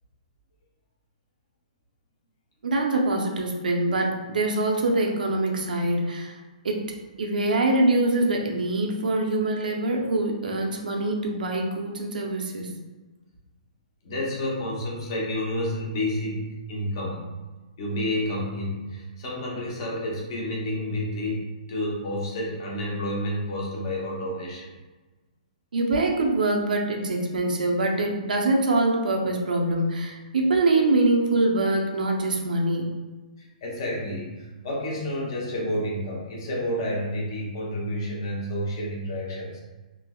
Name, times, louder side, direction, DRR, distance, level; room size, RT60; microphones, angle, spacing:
voice 1, 2.6-6.4 6.6-6.8 7.2-12.7 25.7-32.9, right 2 dB, 80° right, 0 dB, 0.6 m, -24 dB
voice 2, 14.0-17.2 17.8-24.7 33.4-39.6, left 1 dB, 35° left, -3 dB, 0.8 m, -30 dB
3.3 x 3.0 x 2.3 m, 1.2 s
hypercardioid pair, 175°, 4 cm